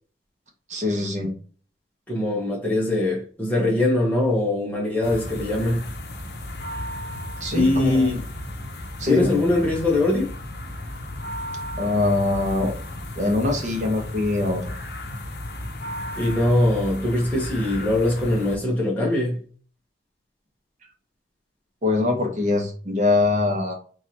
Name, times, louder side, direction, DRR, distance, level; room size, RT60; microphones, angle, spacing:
voice 1, 0.7-1.3 7.4-8.2 9.0-9.3 11.8-12.7 13.2-14.8 21.8-23.7, left 2 dB, 45° right, 1.1 m, -23 dB
voice 2, 2.1-5.9 7.5-8.2 9.1-10.3 16.2-19.4, left 2 dB, 10° left, 1.1 m, -22 dB
sound 1, 5.0-18.6, left 1 dB, 65° left, 0.8 m, -34 dB
3.7 x 3.4 x 2.8 m
head